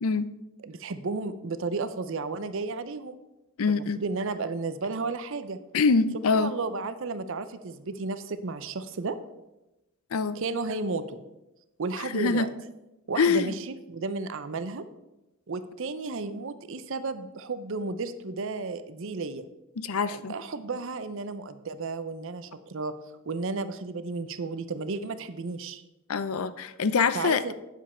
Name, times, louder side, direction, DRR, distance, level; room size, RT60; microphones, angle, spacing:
voice 1, 0.6-3.2 3.7-5.6 6.3-9.2 10.4-11.2 11.8-12.5 13.1-14.8 15.5-19.4 20.1-25.8 27.1-27.5, right 3 dB, 60° right, 12 dB, 0.6 m, -33 dB
voice 2, 3.6-4.0 5.7-6.5 10.1-10.4 12.1-12.5 13.2-13.5 19.8-20.3 26.1-27.4, left 5 dB, 70° left, 14 dB, 0.5 m, -24 dB
9.1 x 7.4 x 4.3 m, 0.98 s
head